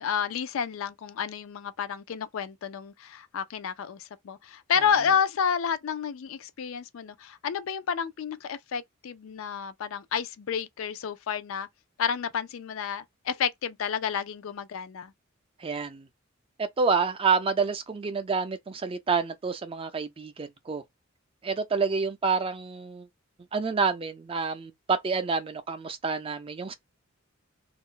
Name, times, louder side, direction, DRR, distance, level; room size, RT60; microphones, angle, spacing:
voice 1, 0.0-11.7 12.0-15.1, left 7 dB, 70° left, 0.4 m, -30 dB
voice 2, 15.6-16.1 16.6-20.8 21.4-23.1 23.5-26.7, right 5 dB, 25° right, 0.3 m, -28 dB
2.4 x 2.0 x 3.6 m
head